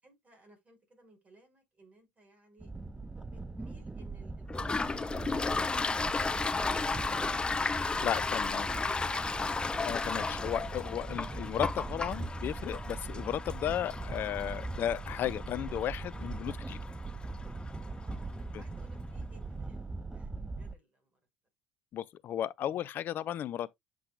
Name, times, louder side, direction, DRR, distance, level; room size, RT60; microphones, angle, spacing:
voice 1, 0.0-2.7 3.3-7.9 8.8-9.4 18.0-19.8 20.1-21.1, right 2 dB, 30° right, 5.0 m, -60 dB
sound 1, 2.6-20.7, right 3 dB, 10° right, 0.6 m, -41 dB
Toilet flush, 4.5-17.9, left 4 dB, 20° left, 0.8 m, -34 dB
voice 2, 8.0-8.7 9.8-16.8 18.5-18.6 21.9-23.8, left 11 dB, 45° left, 0.5 m, -34 dB
7.6 x 6.2 x 2.2 m
figure-of-eight pair, 55°, 5 cm